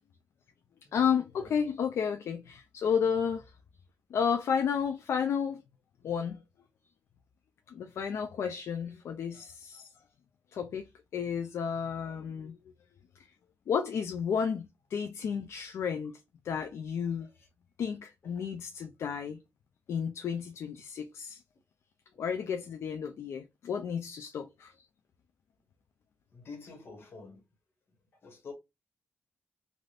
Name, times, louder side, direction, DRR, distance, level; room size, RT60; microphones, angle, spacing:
voice 1, 0.9-3.4 4.1-5.6 6.0-6.4 7.7-9.9 10.5-10.9 11.1-12.6 13.7-16.1 16.4-17.3 17.8-19.4 19.9-21.4 22.2-24.7, left 7 dB, 75° left, 0.3 m, -32 dB
voice 2, 26.3-27.4 28.2-28.5, left 4 dB, 55° left, 1.3 m, -46 dB
3.3 x 2.5 x 2.3 m
cardioid pair, 110°, 5 cm